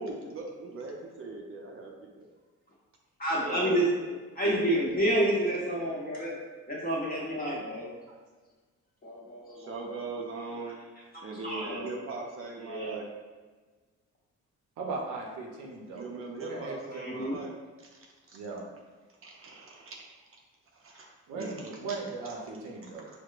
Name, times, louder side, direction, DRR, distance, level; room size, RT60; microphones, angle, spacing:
voice 1, 0.0-2.3 3.3-4.1 4.6-5.5 9.6-10.8 11.2-13.1 15.9-17.5 18.3-18.4 19.2-20.0 20.8-21.1 21.3-21.6, right 3 dB, 45° right, 0 dB, 0.5 m, -40 dB
voice 2, 3.2-3.9 4.4-6.4 6.7-7.9 9.0-9.7 11.1-11.9 12.7-13.0 16.9-17.4, right 1 dB, 30° left, -5 dB, 1.2 m, -29 dB
voice 3, 14.8-16.1 16.4-16.8 17.1-17.3 18.3-18.7 21.3-23.1, right 3 dB, 80° right, -1 dB, 0.7 m, -38 dB
4.6 x 2.1 x 2.4 m, 1.4 s
cardioid pair, 90°, 30 cm